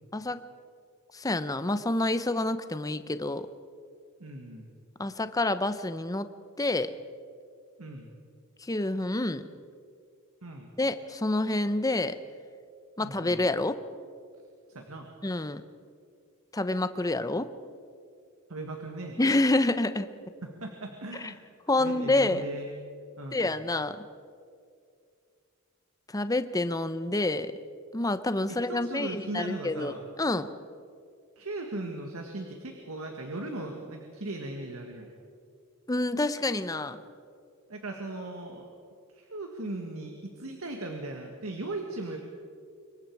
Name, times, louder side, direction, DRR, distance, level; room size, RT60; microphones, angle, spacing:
voice 1, 1.1-3.5 5.0-6.3 6.6-6.9 8.6-9.4 10.8-12.2 13.0-13.8 15.2-15.6 16.5-17.5 19.2-20.1 21.2-21.3 21.7-22.4 23.3-24.0 26.1-27.5 27.9-30.5 35.9-37.0, left 2 dB, 15° left, 12 dB, 0.7 m, -28 dB
voice 2, 4.2-4.7 7.8-8.1 10.4-10.7 13.0-13.4 14.7-15.1 18.5-19.2 20.4-21.4 21.8-22.7 23.2-23.5 28.5-30.0 31.4-35.1 37.7-38.7 39.1-42.2, right 2 dB, 75° right, 3 dB, 1.8 m, -38 dB
25.5 x 22.5 x 4.7 m, 2.3 s
head